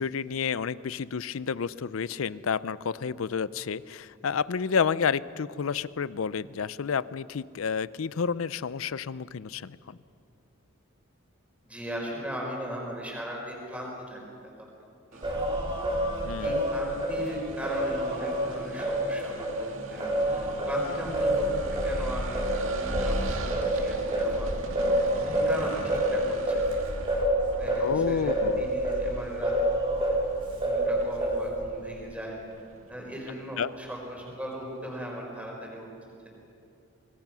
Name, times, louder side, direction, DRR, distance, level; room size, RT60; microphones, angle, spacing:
voice 1, 0.0-10.0 16.2-16.6 27.8-28.7 33.6-33.7, left 6 dB, 90° left, 18 dB, 0.5 m, -30 dB
voice 2, 11.6-14.2 14.6-14.7 15.1-15.3 16.4-21.6 21.8-24.6 25.1-26.8 27.5-29.5 30.6-32.4 32.9-35.9, equal, 5° right, -1 dB, 4.9 m, -38 dB
sound 1, 15.1-35.0, right 3 dB, 75° right, 2.0 m, -42 dB
Singing, 15.2-19.6 20.0-30.3 30.6-31.6, right 1 dB, 25° right, 3.5 m, -28 dB
25.5 x 20.0 x 6.1 m, 2.5 s
head